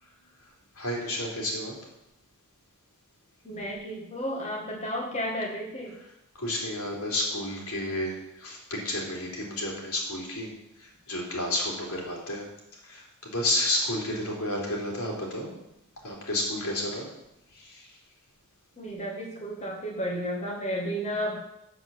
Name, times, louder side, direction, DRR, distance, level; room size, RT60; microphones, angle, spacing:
voice 1, 0.7-1.7 6.3-10.5 10.8-12.5 12.8-15.5 16.0-17.1 17.5-18.0, left 1 dB, 85° left, -3 dB, 3.4 m, -31 dB
voice 2, 3.4-6.0 18.8-21.4, equal, 30° left, -3 dB, 1.9 m, -32 dB
7.6 x 7.5 x 7.0 m, 0.85 s
head